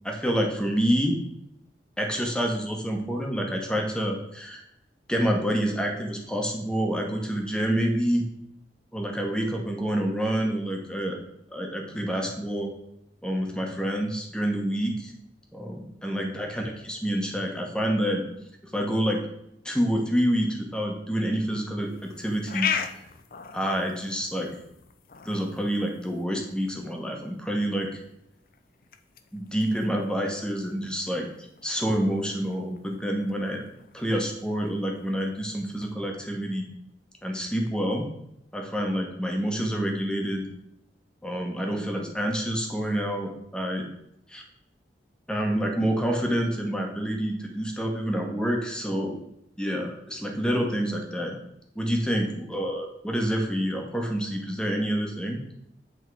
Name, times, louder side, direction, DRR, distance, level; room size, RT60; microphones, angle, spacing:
voice 1, 0.0-1.2 2.0-4.6 5.1-8.2 8.9-11.2 11.5-12.7 13.2-15.1 15.5-18.3 18.7-19.2 19.6-22.7 23.5-24.5 25.2-28.0 29.3-31.3 31.6-33.6 33.9-36.7 37.2-38.1 38.5-40.4 41.2-43.9 44.3-44.4 45.3-49.2 49.6-51.3 51.7-55.4, equal, 5° left, 1 dB, 1.0 m, -27 dB
sound 1, 21.8-35.9, left 7 dB, 50° left, 0.5 m, -39 dB
8.1 x 3.5 x 4.7 m, 0.81 s
head